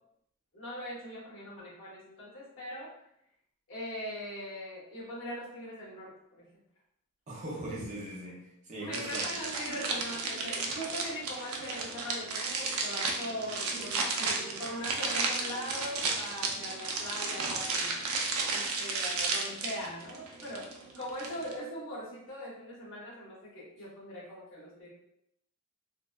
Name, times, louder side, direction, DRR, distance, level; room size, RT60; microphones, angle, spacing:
voice 1, 0.5-2.9 3.7-6.1 6.4-6.5 8.8-18.0 18.5-20.7 21.0-24.9, equal, 60° left, -7 dB, 1.0 m, -41 dB
voice 2, 7.3-9.3, right 1 dB, 35° right, -5 dB, 0.6 m, -40 dB
sound 1, 8.9-21.6, right 3 dB, 85° right, 0.4 m, -33 dB
2.6 x 2.1 x 2.2 m, 0.76 s
head